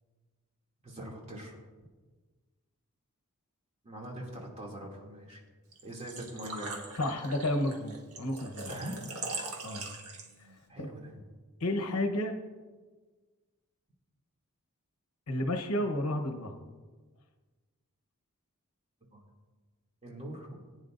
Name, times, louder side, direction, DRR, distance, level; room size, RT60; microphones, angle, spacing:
voice 1, 0.8-1.6 3.8-5.4 5.8-6.8 8.7-9.0 10.7-11.2 19.1-19.2 20.0-20.7, right 1 dB, 30° right, -3 dB, 2.6 m, -42 dB
Engine / Trickle dribble / Fill (with liquid), 5.7-10.6, right 3 dB, 70° right, 1.7 m, -41 dB
voice 2, 7.0-8.8 9.6-9.9 10.4-10.5 10.8-10.9 11.6-12.4 15.3-16.5, left 1 dB, 70° left, 6 dB, 1.1 m, -31 dB
19.0 x 9.8 x 2.6 m, 1.4 s
head